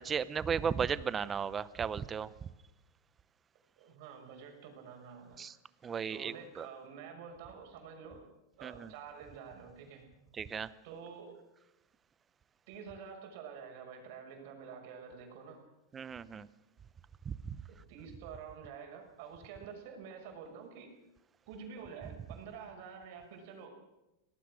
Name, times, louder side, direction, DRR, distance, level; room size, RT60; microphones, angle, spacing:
voice 1, 0.0-2.3 5.4-5.5 5.8-6.7 8.6-8.9 10.3-10.7 15.9-16.5 17.3-17.6, right 7 dB, 20° right, 17 dB, 0.8 m, -35 dB
voice 2, 3.8-5.4 6.1-8.2 8.6-10.1 10.8-11.4 12.7-15.7 17.7-20.9 21.5-23.7, right 6 dB, 55° right, 3 dB, 6.0 m, -48 dB
25.0 x 18.5 x 6.3 m, 0.97 s
supercardioid pair, 150°, 0 cm